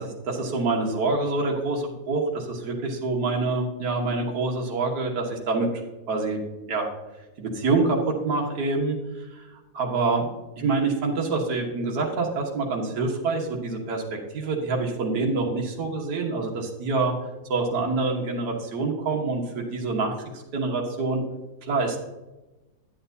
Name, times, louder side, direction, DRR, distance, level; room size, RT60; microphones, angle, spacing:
voice 1, 0.2-5.7 6.1-6.4 6.7-6.9 7.4-9.4 9.7-17.1 17.5-21.2 21.6-22.0, right 3 dB, 60° right, 0 dB, 1.8 m, -26 dB
10.0 x 8.8 x 2.7 m, 1.1 s
omnidirectional pair, 2.1 m